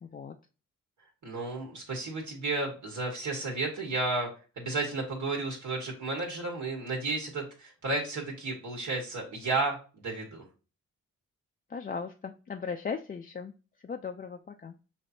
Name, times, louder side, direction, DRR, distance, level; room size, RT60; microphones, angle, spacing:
voice 1, 0.0-0.4 11.7-13.5 13.8-14.8, left 5 dB, 30° left, 5 dB, 0.4 m, -37 dB
voice 2, 1.2-4.3 4.6-10.4, right 3 dB, 70° right, 0 dB, 1.5 m, -32 dB
5.1 x 2.9 x 2.6 m, 0.35 s
cardioid pair, 60°, 32 cm